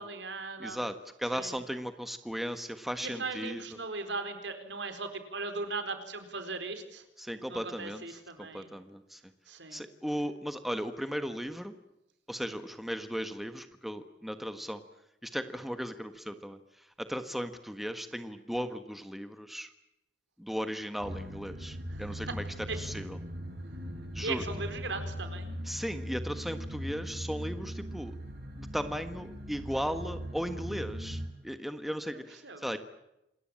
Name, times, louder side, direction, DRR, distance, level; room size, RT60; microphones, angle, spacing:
voice 1, 0.0-0.8 1.3-1.6 3.0-7.0 7.5-8.7 9.5-9.8 21.9-22.4 22.7-22.8 24.2-25.5 32.0-32.7, right 3 dB, 80° right, 9 dB, 4.4 m, -38 dB
voice 2, 0.6-3.6 7.2-8.0 8.4-9.2 9.7-11.7 12.3-14.8 15.2-16.6 17.0-19.7 20.4-22.4 22.7-23.2 24.1-24.4 25.6-28.1 28.6-32.8, equal, ahead, 9 dB, 1.5 m, -36 dB
sound 1, 21.0-31.3, equal, 60° right, 5.4 m, -40 dB
28.0 x 21.0 x 8.9 m, 0.86 s
head